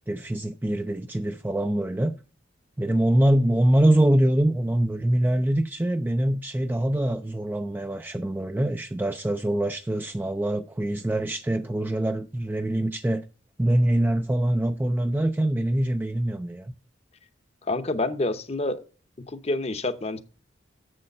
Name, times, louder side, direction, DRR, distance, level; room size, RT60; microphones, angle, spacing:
voice 1, 0.1-2.1 2.8-13.3 13.6-16.7, right 1 dB, 10° right, 0.3 m, -24 dB
voice 2, 17.7-18.8 19.3-20.2, left 2 dB, 35° left, 0.8 m, -27 dB
7.4 x 6.5 x 5.4 m
head